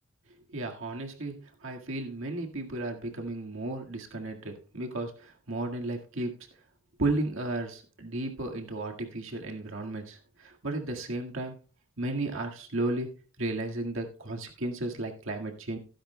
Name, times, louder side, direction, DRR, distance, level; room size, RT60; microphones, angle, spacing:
voice 1, 0.5-1.4 1.6-6.3 7.0-11.6 12.0-13.1 13.4-15.8, right 2 dB, 65° right, 2 dB, 1.8 m, -34 dB
16.0 x 10.0 x 2.2 m, 0.37 s
head